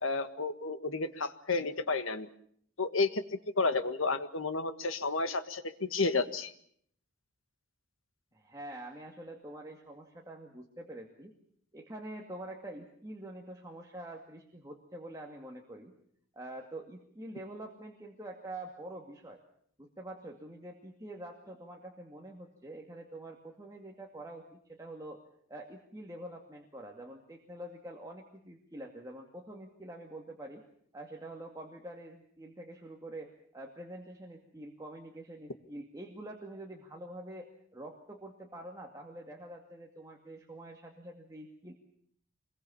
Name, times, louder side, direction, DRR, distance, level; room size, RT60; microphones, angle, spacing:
voice 1, 0.0-2.3 2.8-3.2 3.6-6.5, left 3 dB, 75° left, 10 dB, 1.7 m, -31 dB
voice 2, 8.3-11.3 11.7-15.9 16.3-19.4 19.8-25.2 25.5-30.6 30.9-41.7, right 1 dB, 15° right, 0 dB, 2.3 m, -46 dB
26.5 x 22.0 x 7.1 m, 0.66 s
head